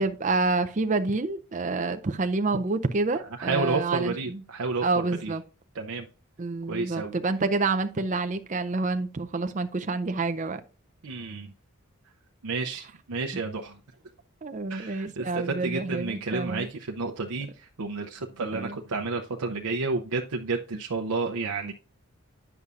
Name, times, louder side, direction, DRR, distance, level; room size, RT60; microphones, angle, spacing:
voice 1, 0.0-4.4 4.8-5.4 6.4-10.6 14.4-16.7 18.5-18.8, right 3 dB, 35° right, 0.5 m, -28 dB
voice 2, 3.4-5.3 5.7-6.1 6.7-7.1 11.0-11.5 12.4-13.8 14.7-21.7, right 3 dB, 85° right, 0.6 m, -31 dB
9.5 x 6.9 x 2.5 m
head